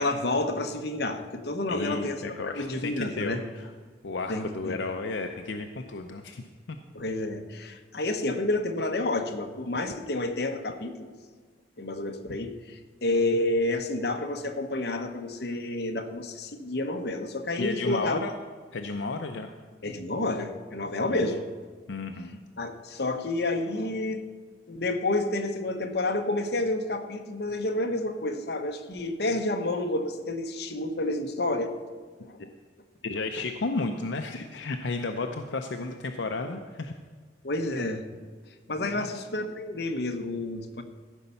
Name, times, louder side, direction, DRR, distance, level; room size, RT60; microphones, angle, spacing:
voice 1, 0.0-3.4 4.3-4.8 6.9-11.1 11.8-18.2 19.8-21.5 22.6-24.2 24.7-31.7 32.2-32.4 37.4-38.0 38.7-40.8, left 2 dB, 60° left, 5 dB, 1.0 m, -29 dB
voice 2, 1.7-3.7 4.0-6.8 17.6-18.3 18.7-19.5 21.1-21.4 21.9-22.4 33.0-36.9 38.8-39.1, left 3 dB, 80° left, 5 dB, 0.6 m, -33 dB
14.5 x 5.4 x 6.9 m, 1.5 s
head